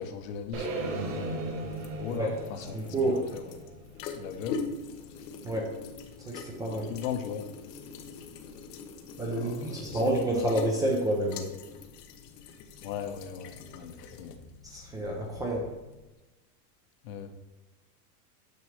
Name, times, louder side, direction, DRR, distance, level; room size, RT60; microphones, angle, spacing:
voice 1, 0.0-1.4 2.0-3.6 4.2-4.6 6.7-7.5 9.3-10.0 10.3-10.5 12.8-14.4 17.0-17.3, left 8 dB, 55° left, 7 dB, 1.0 m, -38 dB
sound 1, 0.5-4.6, right 2 dB, 60° right, 2.0 m, -36 dB
sound 2, 1.2-16.1, left 5 dB, 85° left, 1.1 m, -43 dB
voice 2, 2.7-3.2 5.4-5.7 6.2-6.9 9.2-11.5 14.6-15.7, right 1 dB, 10° right, -2 dB, 0.5 m, -29 dB
9.5 x 5.5 x 3.2 m, 1.1 s
supercardioid pair, 155°, 47 cm